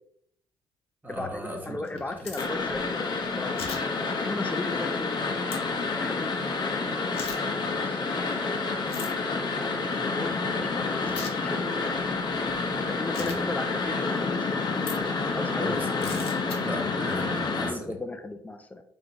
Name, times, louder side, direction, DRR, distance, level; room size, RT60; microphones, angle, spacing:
voice 1, 1.0-1.8 15.6-15.9 16.6-17.9, equal, 20° right, 0 dB, 1.3 m, -37 dB
voice 2, 1.5-3.7 4.0-8.9 9.3-10.3 10.6-12.2 12.8-14.7 15.3-15.7 17.6-18.8, left 2 dB, 15° left, 6 dB, 0.6 m, -37 dB
sound 1, 1.8-2.5 3.6-3.8 5.5-5.6 7.1-7.4 8.9-9.1 11.1-11.3 13.1-13.4 14.8-15.0 16.0-16.6, left 5 dB, 75° left, 1.0 m, -37 dB
sound 2, 2.4-17.7, left 4 dB, 45° left, 0.9 m, -29 dB
3.7 x 3.5 x 4.0 m, 0.69 s
cardioid pair, 90°, 10 cm